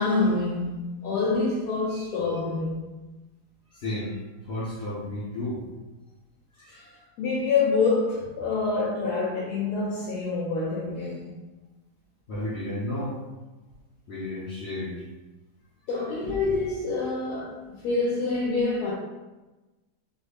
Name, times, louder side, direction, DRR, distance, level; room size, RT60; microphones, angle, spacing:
voice 1, 0.0-2.9 6.7-6.8 7.2-11.3 15.9-18.9, left 3 dB, 75° left, 1.2 m, -26 dB
voice 2, 3.7-5.7 6.6-7.1 12.3-13.2 14.1-15.1, left 1 dB, 55° left, 0.8 m, -33 dB
3.9 x 2.0 x 3.3 m
omnidirectional pair, 1.8 m